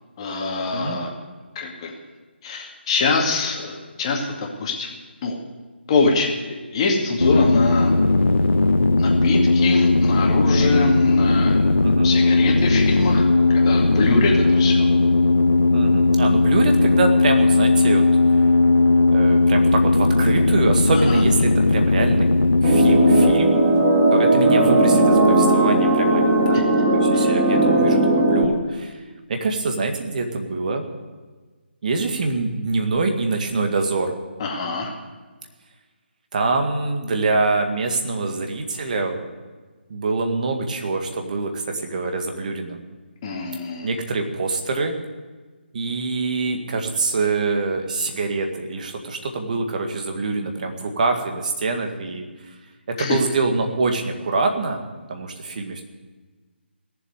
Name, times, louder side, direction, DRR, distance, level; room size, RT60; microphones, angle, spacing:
voice 1, 0.2-1.1 1.6-2.0 2.4-4.9 5.2-5.4 5.9-7.9 9.0-11.6 12.0-13.2 13.5-14.9 20.9-21.2 27.1-27.3 34.4-34.9 43.2-43.9 53.0-53.2, left 3 dB, 30° left, 0 dB, 2.2 m, -24 dB
sound 1, 7.2-23.3, left 3 dB, 70° left, 0.9 m, -17 dB
voice 2, 10.6-10.9 11.8-12.1 15.7-18.1 19.1-22.3 22.6-23.6 24.1-29.0 29.3-30.9 31.8-34.1 36.3-39.2 39.9-42.8 43.8-45.0 45.7-52.2 52.9-54.8 55.1-55.8, right 3 dB, 40° right, 4 dB, 1.9 m, -25 dB
sound 2, 22.6-28.4, right 2 dB, 20° right, 2.2 m, -17 dB
17.5 x 7.5 x 9.3 m, 1.4 s
figure-of-eight pair, 145°, 6 cm